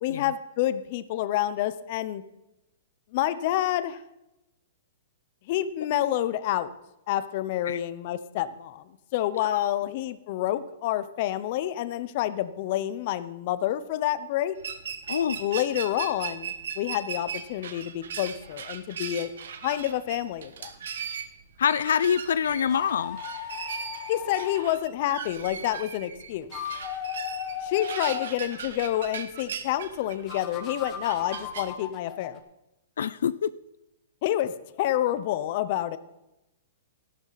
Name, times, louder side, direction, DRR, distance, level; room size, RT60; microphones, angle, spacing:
voice 1, 0.0-2.2 3.1-4.0 5.5-6.7 7.1-14.6 15.4-19.3 19.6-20.7 24.1-26.5 27.6-32.4 34.2-34.5 34.8-36.0, left 13 dB, 35° left, 14 dB, 0.7 m, -28 dB
sound 1, 14.6-31.7, right 7 dB, 75° right, 1.4 m, -38 dB
voice 2, 15.1-15.4 21.6-23.2 33.0-33.5, left 8 dB, 80° left, 16 dB, 0.4 m, -25 dB
sound 2, 22.6-24.7 26.3-28.3 30.3-32.4, left 9 dB, 20° left, 1.2 m, -36 dB
13.0 x 12.0 x 4.1 m, 0.92 s
hypercardioid pair, 170°, 0 cm